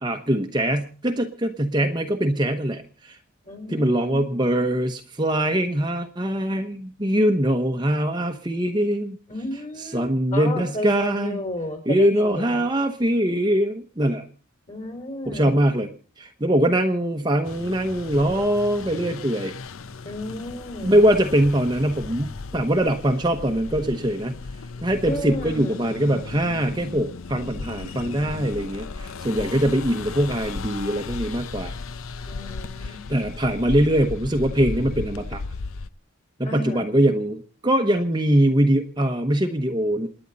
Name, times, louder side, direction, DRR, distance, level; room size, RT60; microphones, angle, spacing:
voice 1, 0.0-3.2 3.7-9.2 9.9-11.4 11.9-14.2 15.3-15.9 16.2-19.5 20.8-24.3 24.8-31.7 32.8-35.4 36.4-40.1, right 1 dB, 20° right, 5 dB, 0.9 m, -22 dB
voice 2, 3.4-4.2 9.3-10.0 10.3-12.6 14.7-15.6 20.0-21.0 25.0-25.8 32.3-33.0 36.4-36.9, left 1 dB, 35° left, 6 dB, 4.4 m, -33 dB
sound 1, 17.4-35.9, left 4 dB, 70° left, 0.7 m, -36 dB
28.5 x 10.0 x 4.0 m, 0.38 s
head